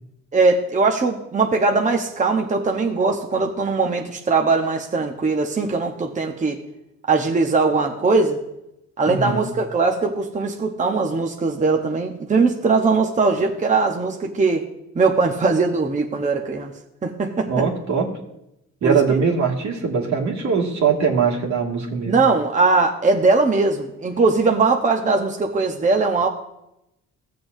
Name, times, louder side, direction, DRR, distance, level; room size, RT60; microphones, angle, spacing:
voice 1, 0.3-6.6 7.1-8.4 9.0-14.6 14.9-16.7 17.0-17.6 18.8-19.0 22.1-26.3, right 3 dB, 25° right, 3 dB, 0.8 m, -20 dB
voice 2, 9.1-9.4 17.5-18.1 18.8-22.2, right 5 dB, 65° right, -1 dB, 2.0 m, -21 dB
15.5 x 6.9 x 2.6 m, 0.86 s
cardioid pair, 90°, 30 cm